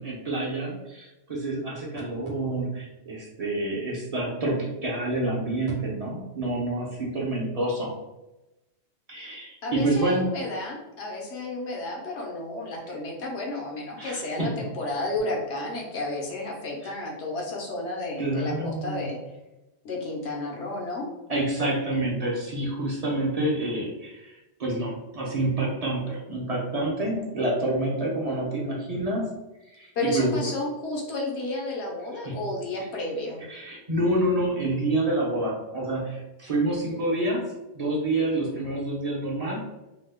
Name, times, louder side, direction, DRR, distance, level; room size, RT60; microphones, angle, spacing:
voice 1, 0.0-7.9 9.1-10.3 14.0-14.5 16.8-16.9 18.2-19.1 21.3-29.3 29.6-30.5 32.2-32.4 33.4-37.4 37.7-39.6, right 1 dB, 40° right, -4 dB, 0.7 m, -28 dB
voice 2, 9.6-19.2 19.8-21.1 30.0-33.4, left 2 dB, 90° left, -2 dB, 1.1 m, -32 dB
2.8 x 2.1 x 3.4 m, 0.99 s
omnidirectional pair, 1.1 m